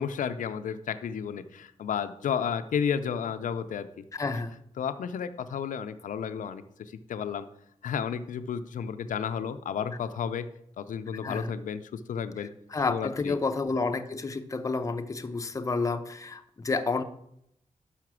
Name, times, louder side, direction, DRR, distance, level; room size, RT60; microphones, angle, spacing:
voice 1, 0.0-3.9 4.8-6.6 7.1-7.5 7.8-10.5 10.8-12.5 12.9-13.4, left 7 dB, 80° left, 10 dB, 0.5 m, -32 dB
voice 2, 4.1-4.5 11.2-11.5 12.4-17.0, left 4 dB, 25° left, 8 dB, 0.5 m, -30 dB
5.8 x 5.7 x 6.1 m, 0.76 s
wide cardioid pair, 110°, 13 cm